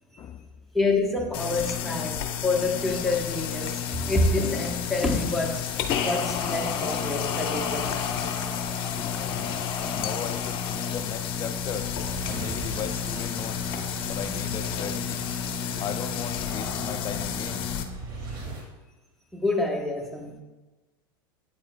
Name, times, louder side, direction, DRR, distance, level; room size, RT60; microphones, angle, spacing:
voice 1, 0.2-0.5 9.0-9.7 9.9-11.9 12.3-13.6 14.1-15.3 15.8-17.7, left 8 dB, 30° left, 10 dB, 0.4 m, -37 dB
voice 2, 0.7-8.0 19.3-20.4, left 2 dB, ahead, 0 dB, 1.0 m, -27 dB
sound 1, 1.3-17.8, left 7 dB, 45° left, 0.8 m, -30 dB
sound 2, 11.3-18.7, right 2 dB, 45° right, 2.1 m, -40 dB
8.7 x 7.0 x 2.3 m, 1.2 s
supercardioid pair, 115°, 12 cm